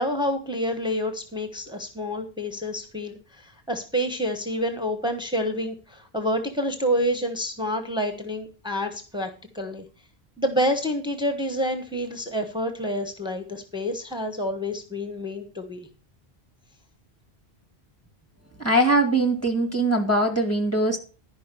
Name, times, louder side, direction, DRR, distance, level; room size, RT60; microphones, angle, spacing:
voice 1, 0.0-9.8 10.4-15.9, equal, 5° right, 6 dB, 1.3 m, -28 dB
voice 2, 18.6-21.0, right 1 dB, 15° left, 3 dB, 2.2 m, -21 dB
11.5 x 5.4 x 6.8 m, 0.36 s
omnidirectional pair, 1.1 m